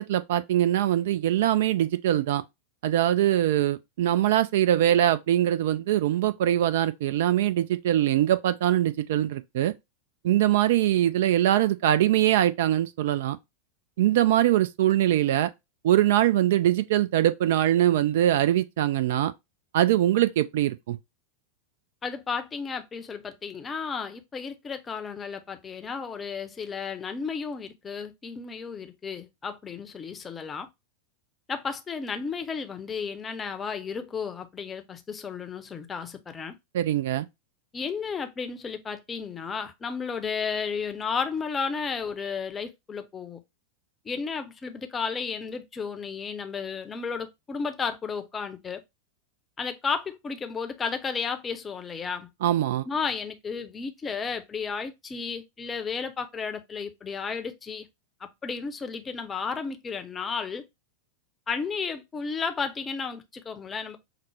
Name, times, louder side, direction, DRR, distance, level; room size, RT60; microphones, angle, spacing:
voice 1, 0.0-2.4 2.8-9.7 10.2-13.4 14.0-15.5 15.8-19.3 19.7-21.0 36.7-37.3 52.4-52.8, right 12 dB, 55° right, 0.3 m, -22 dB
voice 2, 22.0-30.7 31.5-36.6 37.7-43.4 44.0-48.8 49.6-52.3 52.9-57.9 58.2-60.6 61.5-64.0, left 5 dB, 20° left, 0.6 m, -33 dB
5.7 x 2.0 x 3.2 m
figure-of-eight pair, 90°, 0 cm